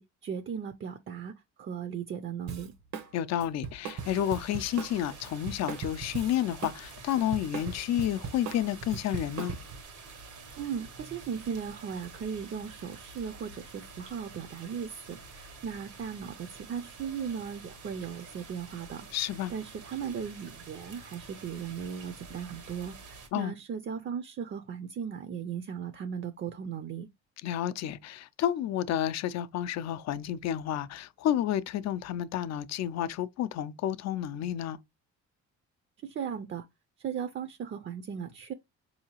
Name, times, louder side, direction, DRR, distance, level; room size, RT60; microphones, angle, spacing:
voice 1, 0.0-1.3 1.6-2.7 10.6-19.1 19.5-27.1 36.0-36.6 37.0-38.5, right 7 dB, 40° right, 0.5 m, -37 dB
Drum kit, 2.5-3.1 3.4-6.8 7.1-9.8, right 6 dB, 65° right, 0.8 m, -39 dB
voice 2, 3.1-9.6 19.1-19.5 23.3-23.5 27.4-34.8, left 11 dB, 60° left, 0.4 m, -30 dB
sound 1, 4.0-23.3, right 4 dB, 85° right, 1.3 m, -48 dB
4.6 x 2.8 x 2.9 m
cardioid pair, 90°, 30 cm